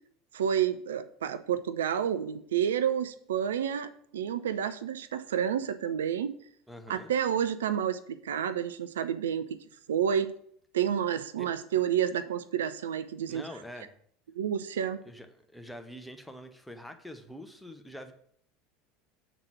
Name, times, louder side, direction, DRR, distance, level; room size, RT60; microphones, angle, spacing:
voice 1, 0.3-6.3 6.9-9.6 9.9-10.4 10.7-13.4 14.3-15.0, right 9 dB, 70° right, 12 dB, 0.3 m, -29 dB
voice 2, 6.7-7.1 11.4-11.5 13.3-13.9 15.1-18.1, equal, ahead, 5 dB, 0.8 m, -45 dB
7.4 x 4.0 x 6.0 m, 0.65 s
figure-of-eight pair, 70°, 0 cm